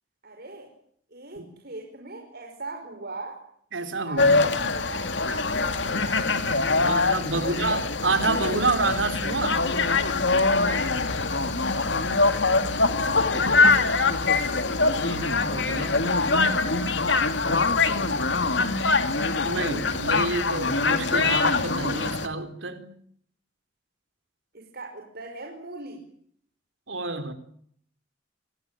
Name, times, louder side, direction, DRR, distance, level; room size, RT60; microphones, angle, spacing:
voice 1, 0.2-0.7 1.1-3.4 4.1-6.2 6.8-7.6 10.5-10.9 24.5-26.0, right 3 dB, 55° right, 5.6 m, -40 dB
voice 2, 3.7-4.4 6.8-9.6 12.9-13.9 15.0-16.1 17.5-18.4 19.4-22.9 26.9-27.3, right 3 dB, 80° right, 4.1 m, -29 dB
sound 1, 4.2-22.3, left 3 dB, 65° left, 2.5 m, -23 dB
29.0 x 21.0 x 9.2 m
head